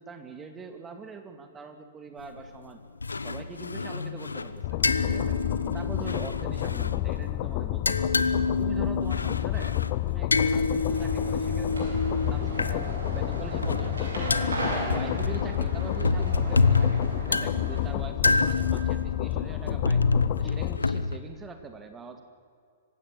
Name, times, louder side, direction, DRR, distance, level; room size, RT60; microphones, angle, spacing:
voice 1, 0.0-2.8 3.2-4.8 5.0-5.4 5.7-8.2 8.6-9.8 10.1-12.0 12.3-14.1 14.6-20.0 20.4-22.2, right 4 dB, 15° right, 7 dB, 2.4 m, -43 dB
sound 1, 2.2-2.6 3.0-7.3 7.7-12.8 13.4-21.2, left 3 dB, 80° left, 1.0 m, -28 dB
sound 2, 4.6-20.8, left 16 dB, 40° left, 0.8 m, -30 dB
sound 3, 10.9-17.8, right 2 dB, 75° right, 7.1 m, -37 dB
26.0 x 16.0 x 9.2 m, 2.2 s
figure-of-eight pair, 115°, 0 cm